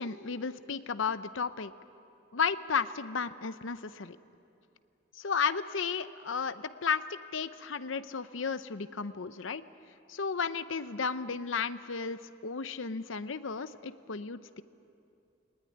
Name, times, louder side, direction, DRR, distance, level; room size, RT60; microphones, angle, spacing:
voice 1, 0.0-1.7 2.3-4.2 5.1-9.6 10.1-14.6, left 5 dB, 80° left, 13 dB, 0.7 m, -33 dB
20.5 x 20.0 x 9.8 m, 2.6 s
head